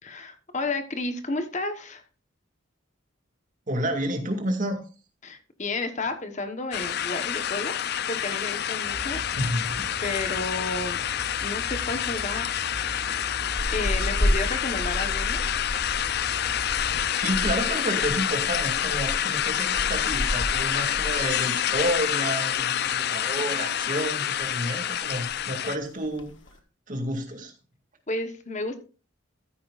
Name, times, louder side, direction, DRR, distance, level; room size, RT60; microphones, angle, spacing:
voice 1, 0.0-2.0 5.2-9.2 10.0-11.0 11.4-12.5 13.7-15.4 28.1-28.8, left 2 dB, 40° left, 8 dB, 1.1 m, -32 dB
voice 2, 3.7-4.8 9.3-9.8 17.2-26.3 26.9-27.5, right 1 dB, 45° right, 4 dB, 2.2 m, -30 dB
sound 1, 6.7-25.8, left 10 dB, 55° left, 0.5 m, -28 dB
Aircraft, 8.8-17.1, right 1 dB, 80° right, 3.1 m, -41 dB
sound 2, 13.6-22.1 22.3-22.6 23.0-23.8 24.1-24.5 24.8-24.9 25.0-25.5 26.0-26.5, equal, 75° left, 1.5 m, -32 dB
14.0 x 9.5 x 2.5 m, 0.35 s
head